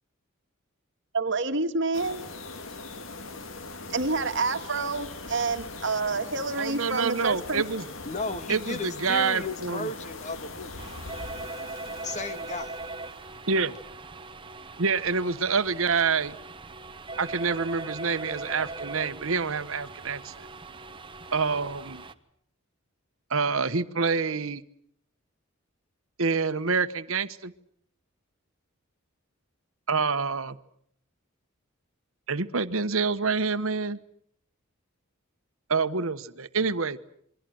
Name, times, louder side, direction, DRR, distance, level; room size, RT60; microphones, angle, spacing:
voice 1, 1.1-2.3 3.9-7.6, right 3 dB, 60° right, 7 dB, 1.9 m, -28 dB
sound 1, 1.9-13.5, left 3 dB, 70° left, 2.3 m, -41 dB
voice 2, 6.6-7.8 8.5-9.9 13.5-13.7 14.8-16.4 17.2-20.5 21.3-22.0 23.3-24.6 26.2-27.5 29.9-30.6 32.3-34.0 35.7-37.0, right 5 dB, 75° right, 12 dB, 1.1 m, -27 dB
voice 3, 8.1-10.7 12.0-12.8, left 3 dB, 35° left, 10 dB, 1.8 m, -34 dB
sound 2, 10.8-22.1, right 3 dB, 25° right, 1.2 m, -40 dB
28.0 x 23.0 x 7.7 m, 0.67 s
head